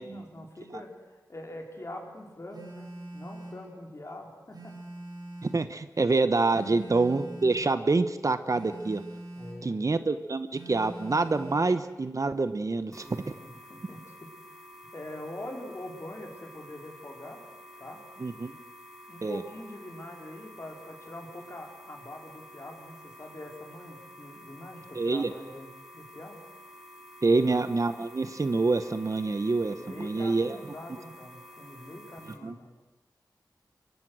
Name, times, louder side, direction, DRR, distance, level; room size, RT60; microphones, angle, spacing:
voice 1, 0.0-4.7 6.6-6.8 9.4-9.8 13.0-14.6 14.9-17.4 17.8-18.0 19.1-26.4 27.2-27.4 29.8-32.8, left 1 dB, 40° left, 1 dB, 4.8 m, -44 dB
Telephone, 2.5-3.7 4.5-5.7 6.5-7.7 8.5-9.7 10.5-11.7, right 1 dB, 75° right, 6.6 m, -43 dB
voice 2, 5.4-9.0 9.6-13.2 18.2-18.5 19.2-19.4 24.9-25.3 27.2-30.6 32.4-32.5, right 3 dB, 50° right, 11 dB, 1.1 m, -26 dB
sound 1, 12.9-32.3, equal, 5° right, 4.8 m, -50 dB
24.0 x 23.0 x 6.4 m, 1.1 s
wide cardioid pair, 70°, 7 cm